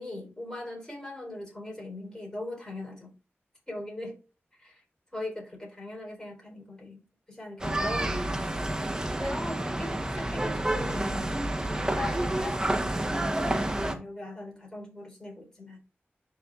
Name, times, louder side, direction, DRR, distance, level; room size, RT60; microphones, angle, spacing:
voice 1, 0.0-3.1 3.7-4.2 4.6-4.8 5.1-7.0 7.3-8.4 9.2-11.3 11.7-15.8, left 1 dB, 15° left, 3.8 m, -39 dB
sound 1, 7.6-13.9, right 1 dB, 15° right, 0.9 m, -29 dB
11.0 x 4.1 x 2.4 m
wide cardioid pair, 75°, 4 cm